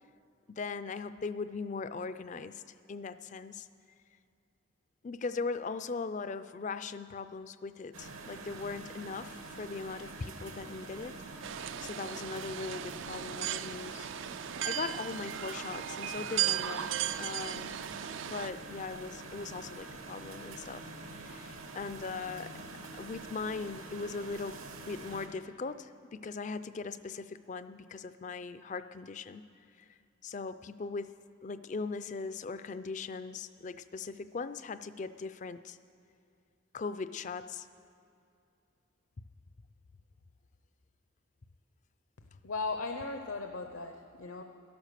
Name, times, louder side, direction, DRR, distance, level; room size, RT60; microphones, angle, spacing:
voice 1, 0.5-2.6 2.9-3.7 5.0-11.2 11.8-14.1 14.6-16.9 17.2-17.8 18.2-20.9 21.1-22.6 22.9-29.4 29.8-29.9 30.2-31.1 31.4-35.8 36.7-37.7, left 4 dB, 35° left, 13 dB, 0.4 m, -39 dB
sound 1, 7.9-25.3, right 3 dB, 75° right, 1.3 m, -46 dB
sound 2, 11.4-18.5, right 11 dB, 60° right, 0.3 m, -36 dB
voice 2, 42.4-44.4, left 3 dB, 75° left, 5 dB, 0.7 m, -37 dB
13.0 x 11.5 x 6.6 m, 2.6 s
head